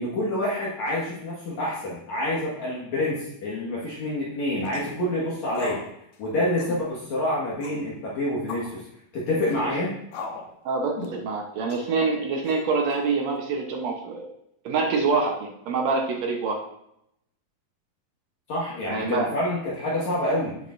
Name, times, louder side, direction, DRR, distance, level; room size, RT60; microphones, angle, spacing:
voice 1, 0.0-5.8 6.2-8.8 9.1-10.0 18.5-20.6, left 1 dB, 55° left, -6 dB, 2.6 m, -27 dB
sound 1, 4.7-5.0 5.5-5.9 6.1-6.2 6.6-6.8 7.6-7.9 8.5-8.7 9.4-9.6 10.1-10.5 11.0-11.2 11.7-11.9 12.5-12.9, left 5 dB, 80° left, 2.9 m, -37 dB
voice 2, 10.6-14.3 14.6-16.6 18.9-19.3, right 4 dB, 75° right, 1 dB, 1.6 m, -26 dB
15.5 x 6.9 x 2.6 m, 0.78 s
omnidirectional pair, 4.4 m